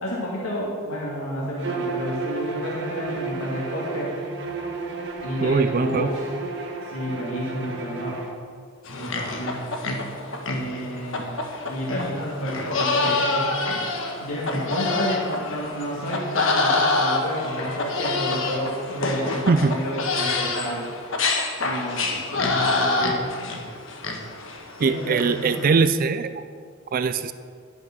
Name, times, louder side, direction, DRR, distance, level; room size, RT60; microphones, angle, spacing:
voice 1, 0.0-4.2 5.2-6.2 6.8-8.2 8.9-9.6 10.5-11.4 11.6-13.5 14.2-20.9 21.6-23.3 24.8-25.8, equal, 90° left, -5 dB, 2.3 m, -30 dB
Bowed string instrument, 1.6-8.3, right 3 dB, 60° right, 1.3 m, -32 dB
voice 2, 5.4-6.1 19.5-19.8 24.8-26.4 26.9-27.3, right 4 dB, 45° right, 12 dB, 0.4 m, -21 dB
sound 1, 8.9-25.7, left 3 dB, 65° left, 1.3 m, -27 dB
10.5 x 8.7 x 6.0 m, 2.1 s
head